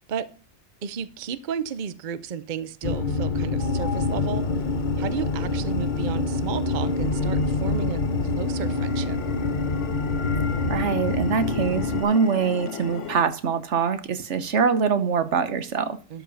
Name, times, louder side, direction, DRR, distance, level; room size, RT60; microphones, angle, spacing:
voice 1, 0.8-4.4 5.0-8.0 8.4-9.2 16.1-16.2, right 7 dB, 50° right, 0.7 m, -33 dB
sound 1, 2.8-12.0, left 3 dB, 45° left, 1.1 m, -26 dB
sound 2, 3.6-13.2, left 6 dB, 85° left, 1.2 m, -37 dB
voice 2, 10.7-16.0, right 6 dB, 75° right, 1.3 m, -24 dB
12.5 x 5.2 x 5.6 m
omnidirectional pair, 1.2 m